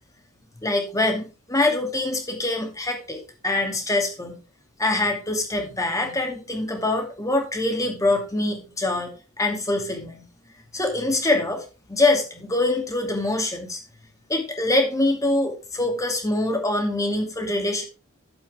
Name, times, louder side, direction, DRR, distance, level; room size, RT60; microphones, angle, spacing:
voice 1, 0.6-4.4 4.8-9.1 9.4-10.3 10.7-13.8 14.3-17.8, left 2 dB, 15° left, 3 dB, 2.4 m, -24 dB
11.5 x 8.0 x 3.6 m, 0.31 s
head